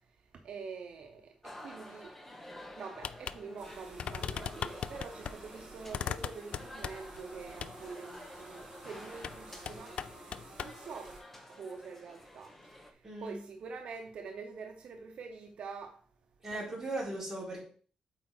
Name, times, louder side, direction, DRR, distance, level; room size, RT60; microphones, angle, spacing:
voice 1, 0.4-2.1 2.8-10.0 10.6-11.1 11.5-12.5 13.2-16.0 16.5-16.6, right 5 dB, 65° right, 0.8 m, -45 dB
sound 1, 1.4-12.9, left 1 dB, 15° left, 1.1 m, -51 dB
sound 2, 3.0-3.4 3.6-3.7 4.0-5.3 5.9-7.2 7.6-7.8 9.2-9.4 9.7-10.8, left 8 dB, 60° left, 0.3 m, -38 dB
sound 3, 3.6-11.2, right 2 dB, 45° right, 4.0 m, -52 dB
voice 2, 13.0-13.4 16.4-17.6, right 2 dB, 15° right, 4.2 m, -38 dB
8.1 x 4.7 x 4.4 m
wide cardioid pair, 145°, 2 cm